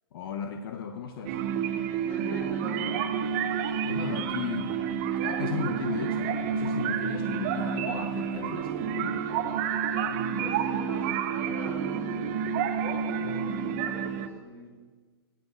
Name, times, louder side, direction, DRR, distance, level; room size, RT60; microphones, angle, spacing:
voice 1, 0.1-1.4 3.8-4.8 5.2-9.2, left 7 dB, 60° left, 7 dB, 0.8 m, -36 dB
sound 1, 1.2-14.3, right 7 dB, 35° right, 0.8 m, -29 dB
voice 2, 2.0-3.0 10.4-12.3 13.1-14.9, equal, 15° left, -3 dB, 3.7 m, -42 dB
9.8 x 7.6 x 8.0 m, 1.4 s
hypercardioid pair, 150°, 13 cm